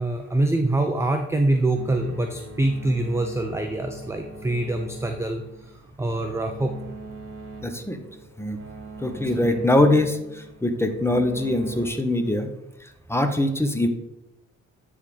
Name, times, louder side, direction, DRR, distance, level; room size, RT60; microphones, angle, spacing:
voice 1, 0.0-5.4 6.0-6.7 9.1-9.5, right 2 dB, 10° right, 4 dB, 0.5 m, -25 dB
sound 1, 1.8-11.9, right 3 dB, 45° right, 1.6 m, -41 dB
voice 2, 7.6-8.0 8.4-8.6 9.0-12.5 12.8-13.9, left 1 dB, 10° left, 7 dB, 0.9 m, -23 dB
8.9 x 3.7 x 4.9 m, 0.90 s
cardioid pair, 90°, 30 cm